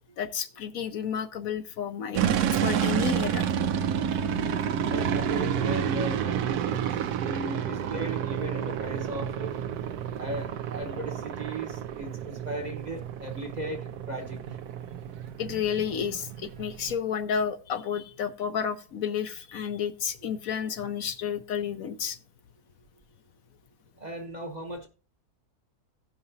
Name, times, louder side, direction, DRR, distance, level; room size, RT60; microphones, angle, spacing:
voice 1, 0.2-2.2 2.5-3.5 15.4-22.2, left 7 dB, 70° left, 1.1 m, -31 dB
sound 1, 2.1-16.9, right 8 dB, 80° right, 1.2 m, -30 dB
voice 2, 4.8-9.6 10.2-14.4 24.0-24.9, equal, 35° right, 0.9 m, -37 dB
16.5 x 5.9 x 2.7 m
omnidirectional pair, 1.6 m